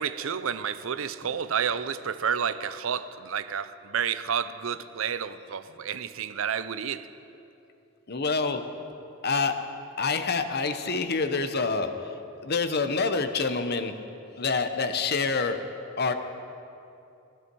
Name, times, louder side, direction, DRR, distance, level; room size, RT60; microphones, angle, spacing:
voice 1, 0.0-7.1, right 7 dB, 70° right, 13 dB, 0.6 m, -30 dB
voice 2, 8.1-8.6 9.2-9.6 10.0-11.9 12.4-13.9 14.4-15.6 16.0-16.1, left 4 dB, 50° left, 8 dB, 0.9 m, -26 dB
19.0 x 15.5 x 4.7 m, 2.8 s
head